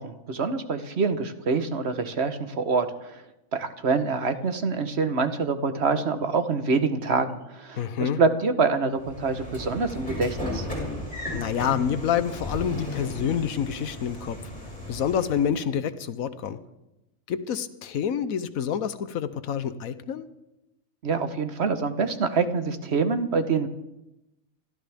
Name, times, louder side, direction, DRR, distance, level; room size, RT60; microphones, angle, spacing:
voice 1, 0.0-3.2 3.5-10.7 21.0-23.7, right 4 dB, 55° right, 9 dB, 1.2 m, -26 dB
voice 2, 7.8-8.2 11.3-14.4 14.9-16.6 17.3-20.3, left 8 dB, 85° left, 12 dB, 1.3 m, -27 dB
Train / Sliding door, 9.0-15.5, left 1 dB, 5° left, 5.4 m, -35 dB
28.5 x 13.0 x 3.5 m, 0.93 s
omnidirectional pair, 1.4 m